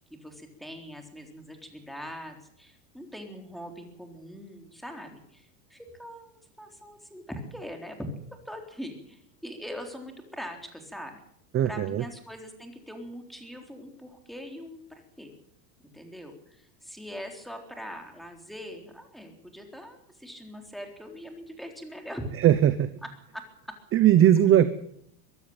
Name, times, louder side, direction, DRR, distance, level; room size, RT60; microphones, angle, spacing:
voice 1, 0.1-8.0 8.5-11.2 11.6-15.3 15.8-22.3 23.3-23.4, equal, ahead, 3 dB, 3.8 m, -42 dB
voice 2, 11.5-12.0 22.4-22.9 23.9-24.7, right 11 dB, 25° right, 13 dB, 0.9 m, -19 dB
23.5 x 13.0 x 8.9 m, 0.69 s
supercardioid pair, 140°, 47 cm